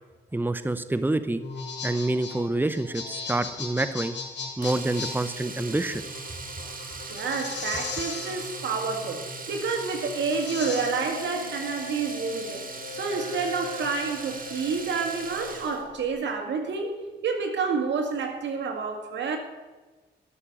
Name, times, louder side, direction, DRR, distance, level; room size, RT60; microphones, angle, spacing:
voice 1, 0.3-1.4 1.8-4.2 4.6-6.0, right 2 dB, 10° right, 0.8 m, -27 dB
sound 1, 1.3-16.1, left 4 dB, 80° left, 2.7 m, -38 dB
Domestic sounds home sounds, 4.6-15.9 18.0-18.1 18.4-18.5, right 4 dB, 50° right, 1.9 m, -39 dB
voice 2, 7.1-12.6 12.9-17.0 17.2-19.4, right 5 dB, 85° right, 2.0 m, -29 dB
13.0 x 6.8 x 8.9 m
cardioid pair, 65°, 18 cm